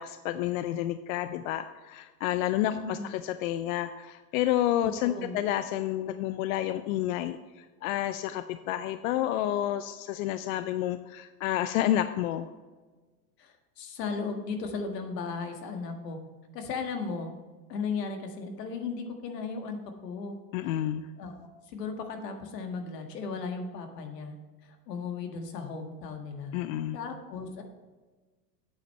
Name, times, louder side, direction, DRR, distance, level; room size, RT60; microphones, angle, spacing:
voice 1, 0.0-12.5 20.5-21.1 26.5-27.0, left 12 dB, 55° left, 11 dB, 0.6 m, -30 dB
voice 2, 2.7-3.1 5.0-5.3 13.4-16.2 16.5-17.4 17.7-20.4 21.2-24.3 24.9-26.5 26.9-27.6, left 4 dB, 75° left, 5 dB, 1.7 m, -36 dB
8.5 x 7.7 x 4.4 m, 1.3 s
hypercardioid pair, 110°, 48 cm